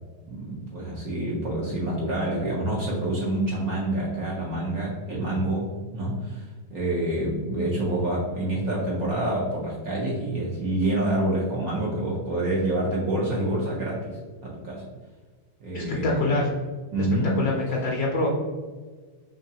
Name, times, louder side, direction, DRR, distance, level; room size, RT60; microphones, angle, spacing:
voice 1, 0.3-14.8 15.6-16.3 16.9-17.4, right 1 dB, 65° right, -5 dB, 0.9 m, -27 dB
voice 2, 15.7-16.5 17.4-18.3, left 2 dB, 70° left, -2 dB, 0.9 m, -25 dB
3.9 x 3.1 x 2.7 m, 1.4 s
omnidirectional pair, 2.3 m